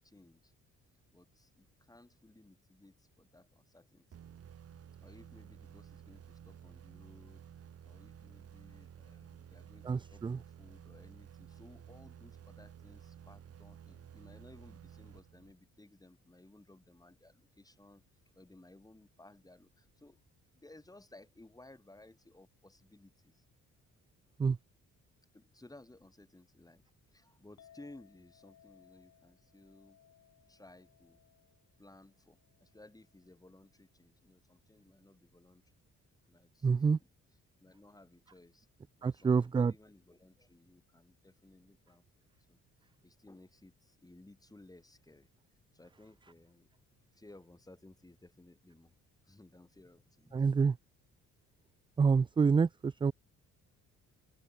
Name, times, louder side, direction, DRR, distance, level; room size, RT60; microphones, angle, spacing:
voice 1, 0.0-0.5 1.1-4.1 5.0-18.0 18.3-20.2 20.5-23.4 25.3-26.8 27.1-30.0 30.5-31.2 31.8-35.6 36.3-37.1 37.6-38.7 39.0-45.3 45.7-46.7 47.1-48.9 49.2-50.4, left 2 dB, 10° left, 7.4 m, -59 dB
sound 1, 4.1-15.8, right 9 dB, 50° right, 1.9 m, -53 dB
voice 2, 9.9-10.4 24.4-24.6 36.6-37.0 39.0-39.7 50.3-50.7 52.0-53.1, right 5 dB, 15° right, 0.3 m, -27 dB
Chink clink, 27.6-33.9, left 10 dB, 65° left, 7.4 m, -65 dB
open air
cardioid pair, 90°, 30 cm